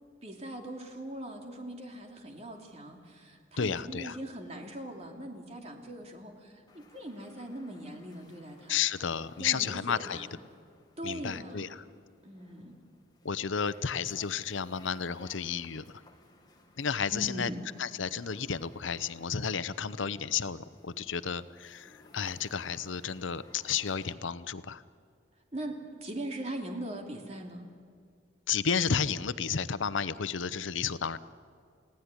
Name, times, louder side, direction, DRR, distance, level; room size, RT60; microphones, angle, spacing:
voice 1, 0.2-8.8 9.4-10.3 11.0-11.8 12.2-12.8 17.1-17.6 25.5-27.7, right 1 dB, 35° right, 2 dB, 2.9 m, -41 dB
voice 2, 3.6-4.2 8.7-10.3 11.0-11.7 13.2-15.8 16.8-17.5 17.8-24.8 28.5-31.2, left 6 dB, 80° left, 15 dB, 0.8 m, -32 dB
sound 1, 6.7-24.1, left 2 dB, 20° left, 2.0 m, -60 dB
30.0 x 17.0 x 9.8 m, 2.2 s
head